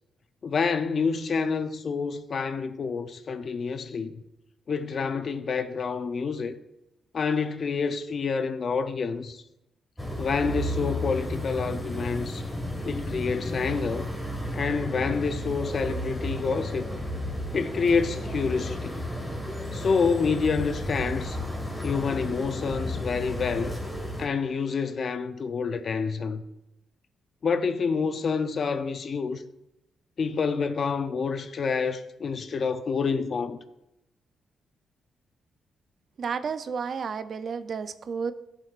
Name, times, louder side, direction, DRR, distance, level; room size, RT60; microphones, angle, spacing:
voice 1, 0.4-4.2 4.7-6.6 7.1-9.4 10.2-12.4 12.8-14.1 14.5-16.9 17.5-19.0 19.7-21.4 21.8-23.8 24.2-26.4 27.4-29.4 30.2-33.6, left 5 dB, 45° left, 0.5 m, -28 dB
sound 1, 10.0-24.3, left 1 dB, ahead, 1.6 m, -33 dB
voice 2, 36.2-38.3, right 6 dB, 50° right, 0.4 m, -31 dB
13.5 x 7.4 x 2.5 m
cardioid pair, 120°, 0 cm